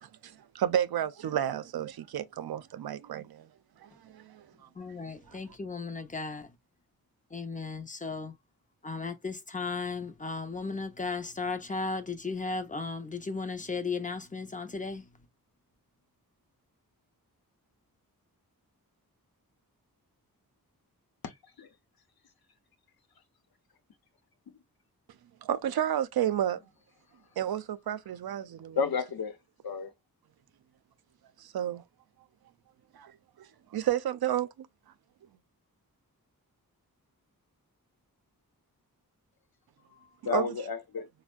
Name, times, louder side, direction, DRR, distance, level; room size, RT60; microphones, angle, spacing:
voice 1, 0.0-3.5 3.8-4.5 25.4-26.6 27.4-28.8 31.4-31.8 32.9-34.7 40.3-40.5, right 10 dB, 85° right, 0.5 m, -31 dB
voice 2, 4.7-6.6 7.3-8.4 8.8-15.3, left 4 dB, 20° left, 0.5 m, -35 dB
voice 3, 21.2-21.7 28.8-29.4 29.6-29.9 39.9-40.0 40.2-41.1, left 5 dB, 80° left, 0.8 m, -32 dB
4.3 x 2.1 x 2.2 m
wide cardioid pair, 115°, 36 cm